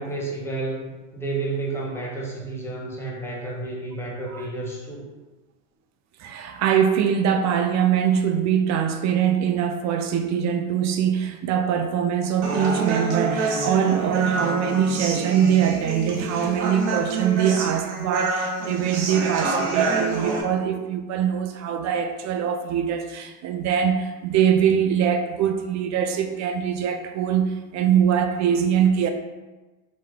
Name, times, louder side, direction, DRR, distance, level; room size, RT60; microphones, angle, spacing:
voice 1, 0.0-5.0, right 3 dB, 5° left, -3 dB, 1.0 m, -31 dB
voice 2, 6.2-29.1, right 8 dB, 45° right, 6 dB, 0.4 m, -23 dB
Human voice, 12.4-20.4, right 4 dB, 60° right, 0.9 m, -27 dB
3.6 x 2.8 x 3.4 m, 1.2 s
supercardioid pair, 95°, 41 cm